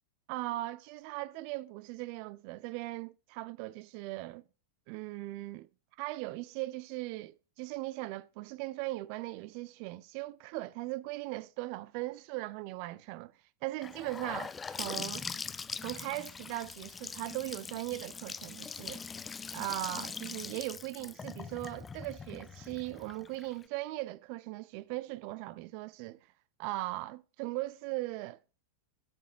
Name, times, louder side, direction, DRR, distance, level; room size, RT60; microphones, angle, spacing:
voice 1, 0.3-4.4 4.9-5.7 6.0-13.3 13.6-15.3 15.8-19.0 19.5-26.2 26.6-28.4, right 19 dB, 45° right, 0.5 m, -39 dB
Gurgling / Sink (filling or washing) / Bathtub (filling or washing), 13.8-23.6, left 5 dB, 15° left, 0.5 m, -42 dB
17.5 x 7.0 x 2.5 m
figure-of-eight pair, 90°, 0 cm